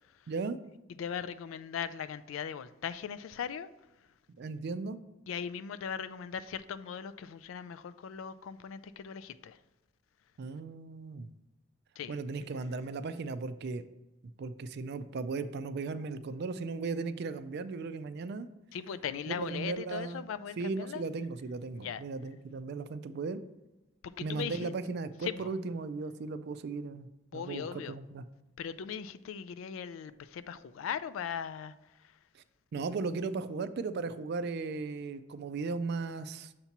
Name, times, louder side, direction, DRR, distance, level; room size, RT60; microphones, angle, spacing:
voice 1, 0.3-0.6 4.4-5.0 10.4-11.3 12.1-13.8 14.4-18.5 19.3-20.2 20.6-23.4 24.2-28.2 32.7-36.5, right 4 dB, 55° right, 0.4 m, -36 dB
voice 2, 1.0-3.7 5.3-9.6 12.0-12.1 18.7-21.0 21.7-22.0 24.0-24.7 25.2-25.5 27.3-28.0 28.6-31.7, left 7 dB, 75° left, 0.3 m, -39 dB
6.7 x 2.8 x 5.8 m
head